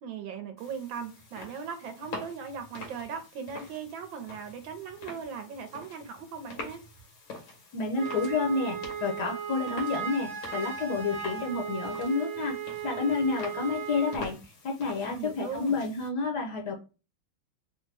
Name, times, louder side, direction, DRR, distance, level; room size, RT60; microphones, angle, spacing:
voice 1, 0.0-6.8 15.0-15.8, right 6 dB, 70° right, 1.3 m, -39 dB
sound 1, 0.6-16.1, left 2 dB, 85° left, 2.1 m, -46 dB
voice 2, 7.7-12.5 12.8-16.8, left 4 dB, 65° left, 1.2 m, -30 dB
Wind instrument woodwind instrument, 7.9-14.2, right 8 dB, 90° right, 0.5 m, -36 dB
4.2 x 2.1 x 3.2 m
omnidirectional pair, 2.3 m